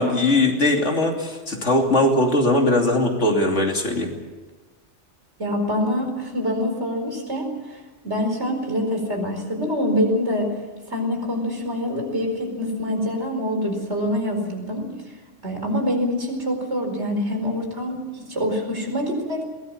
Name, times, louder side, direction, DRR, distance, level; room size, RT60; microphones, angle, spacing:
voice 1, 0.0-4.1, left 1 dB, 75° left, 2 dB, 3.3 m, -20 dB
voice 2, 5.4-7.5 8.0-10.5 10.9-14.9 15.4-19.4, left 1 dB, 65° right, 3 dB, 5.0 m, -25 dB
22.0 x 18.5 x 8.7 m, 1.3 s
omnidirectional pair, 1.2 m